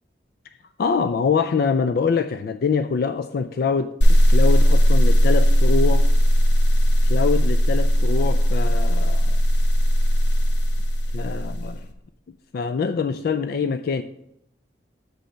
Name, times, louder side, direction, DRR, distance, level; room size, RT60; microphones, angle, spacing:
voice 1, 0.8-6.1 7.0-9.4 11.1-11.9 12.5-14.0, left 5 dB, 60° left, 0.3 m, -24 dB
sound 1, 4.0-11.8, equal, 80° left, 0.8 m, -17 dB
7.6 x 5.4 x 5.6 m
head